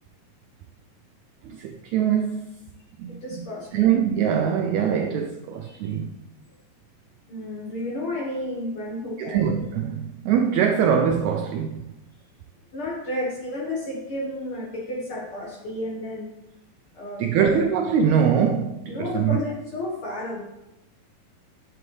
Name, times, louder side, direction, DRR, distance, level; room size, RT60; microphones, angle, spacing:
voice 1, 1.4-2.5 3.0-6.1 9.2-11.9 17.2-19.4, right 8 dB, 80° right, 1.6 m, -23 dB
voice 2, 3.1-3.9 5.7-5.8 7.3-9.5 12.7-16.3 16.9-17.6 18.9-20.4, left 1 dB, 55° left, 1.7 m, -32 dB
10.5 x 6.9 x 3.2 m
omnidirectional pair, 3.8 m